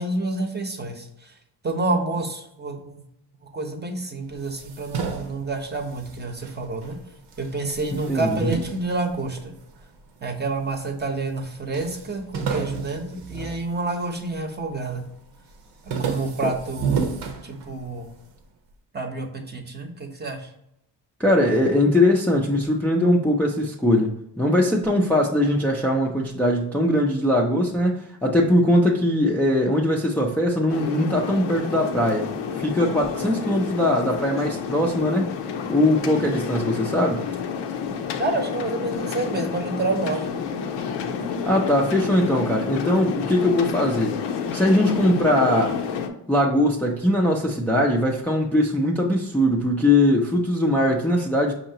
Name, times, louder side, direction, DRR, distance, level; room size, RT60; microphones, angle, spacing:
voice 1, 0.0-1.3 1.6-3.0 3.5-7.0 7.4-9.5 10.2-15.0 16.0-16.9 17.4-18.1 18.9-20.5 38.2-40.4, right 2 dB, 25° right, 4 dB, 0.8 m, -28 dB
sound 1, 4.3-7.0 7.3-9.8 10.4-11.1 11.4-11.5 11.7-14.3 14.7-15.1 15.5-18.1, right 6 dB, 75° right, 0.9 m, -31 dB
voice 2, 8.1-8.5 21.2-32.3 32.6-35.3 35.7-37.2 41.4-44.2 44.5-45.8 46.3-51.5, left 1 dB, 5° left, -3 dB, 0.5 m, -21 dB
sound 2, 30.7-46.1, left 6 dB, 80° left, 0.7 m, -29 dB
5.5 x 2.9 x 2.8 m, 0.80 s
cardioid pair, 100°, 42 cm